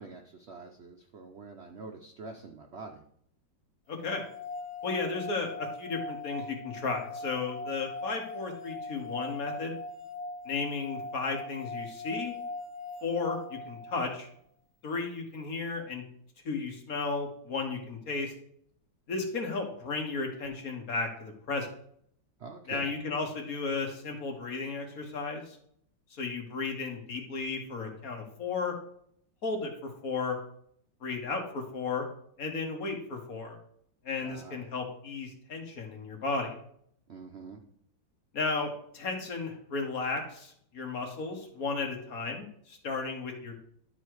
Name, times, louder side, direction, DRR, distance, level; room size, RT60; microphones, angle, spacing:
voice 1, 0.0-3.0 22.4-23.0 34.2-34.7 37.1-37.6, right 4 dB, 85° right, 3 dB, 0.5 m, -45 dB
voice 2, 3.9-4.2 4.8-9.8 10.4-12.3 13.0-14.3 14.8-16.0 16.4-18.3 19.1-21.7 22.7-25.6 26.1-28.7 29.4-30.4 31.0-32.0 32.4-33.6 34.0-36.5 38.3-43.5, left 4 dB, 50° left, 3 dB, 1.6 m, -34 dB
sound 1, 4.0-14.1, left 2 dB, 35° right, 2.6 m, -40 dB
11.0 x 4.2 x 4.7 m, 0.67 s
omnidirectional pair, 2.1 m